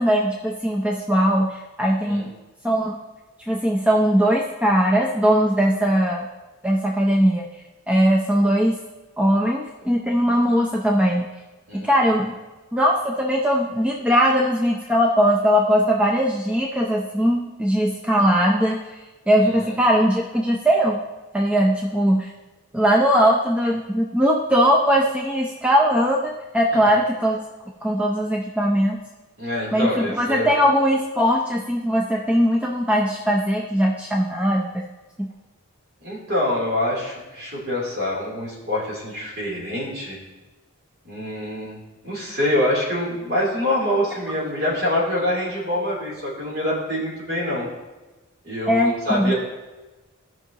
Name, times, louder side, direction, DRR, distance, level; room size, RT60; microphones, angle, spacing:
voice 1, 0.0-2.3 2.6-3.0 3.5-6.3 6.6-7.5 7.9-8.8 9.2-11.2 11.7-12.3 12.7-18.8 19.3-21.0 21.3-22.3 22.7-27.4 27.8-29.0 29.7-34.8 35.2-35.3 48.7-49.3, equal, 5° right, -1 dB, 0.6 m, -20 dB
voice 2, 11.7-12.0 29.4-30.5 36.0-40.2 41.0-41.8 42.0-47.7 48.4-49.3, left 1 dB, 45° right, -5 dB, 3.2 m, -25 dB
16.5 x 5.8 x 3.0 m, 1.1 s
head